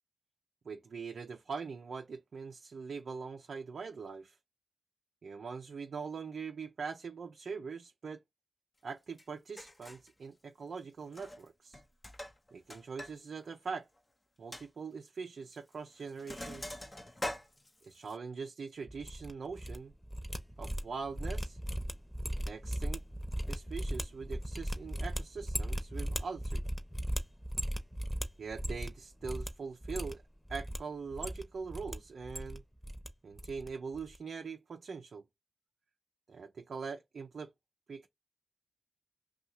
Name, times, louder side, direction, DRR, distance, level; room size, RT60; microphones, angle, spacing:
voice 1, 0.6-4.4 5.2-8.2 8.8-11.8 12.5-13.9 14.4-16.8 17.8-19.9 20.6-21.6 22.5-23.0 23.5-26.6 28.4-30.2 30.5-32.6 33.2-35.3 36.3-37.5 37.9-38.1, right 5 dB, 70° right, 0.5 m, -42 dB
Sink (filling or washing), 9.2-9.3 9.6-10.1 11.1-11.5 11.7-13.1 13.4-13.5 14.0-14.1 14.5-14.7 15.5-15.7 16.0-18.2, left 1 dB, 25° left, 0.8 m, -43 dB
sound 1, 18.9-19.8 20.0-29.0 29.2-29.5 29.8-30.8 31.1-31.9 32.2-33.1 33.4-33.7 33.9-34.2, equal, 5° left, 1.0 m, -37 dB
2.7 x 2.4 x 4.2 m
cardioid pair, 45°, 0 cm